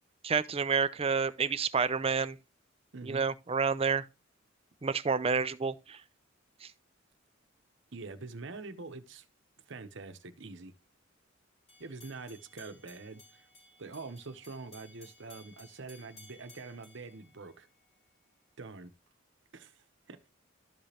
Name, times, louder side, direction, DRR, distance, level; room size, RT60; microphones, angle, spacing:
voice 1, 0.2-2.4 3.0-4.1 4.8-6.0 6.6-6.7, right 5 dB, 30° right, 0.5 m, -29 dB
voice 2, 2.9-3.3 7.9-9.3 9.7-10.7 11.8-13.5 13.8-17.7 18.6-18.9 19.5-20.2, right 3 dB, 65° right, 0.9 m, -45 dB
sound 1, 11.7-17.9, left 2 dB, 30° left, 2.6 m, -58 dB
13.0 x 5.1 x 2.8 m
head